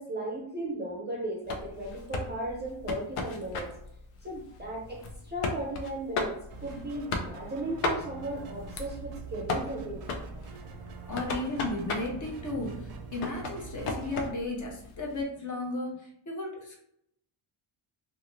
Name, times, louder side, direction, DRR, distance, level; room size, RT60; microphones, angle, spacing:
voice 1, 0.0-3.7 4.2-10.0 10.9-11.1, right 1 dB, 20° right, -3 dB, 0.4 m, -36 dB
sound 1, 1.4-15.2, left 3 dB, 90° left, 0.6 m, -37 dB
sound 2, 6.5-14.3, right 4 dB, 85° right, 0.6 m, -44 dB
voice 2, 11.1-16.0 16.3-16.8, left 2 dB, 40° left, -1 dB, 0.6 m, -34 dB
2.6 x 2.5 x 3.0 m, 0.73 s
wide cardioid pair, 175°, 50 cm